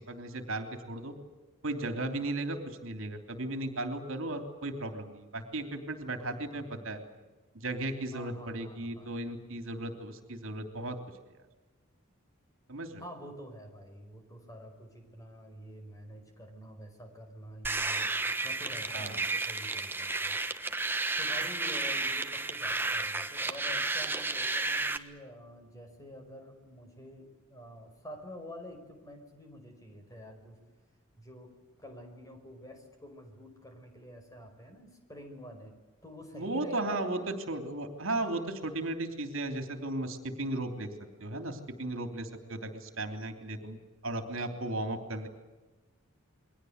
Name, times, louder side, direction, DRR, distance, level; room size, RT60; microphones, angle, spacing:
voice 1, 0.1-1.1 1.6-7.0 7.5-11.0 12.7-13.0 18.9-19.2 36.3-37.2 37.5-40.9 41.2-45.3, right 2 dB, 65° right, 7 dB, 3.1 m, -35 dB
voice 2, 6.2-7.0 8.1-9.1 13.0-20.4 21.2-30.6 31.2-31.5 31.8-37.4, equal, 15° left, 4 dB, 5.0 m, -48 dB
sound 1, 17.6-25.0, right 3 dB, 10° right, 1.2 m, -32 dB
29.5 x 22.0 x 8.0 m, 1.2 s
head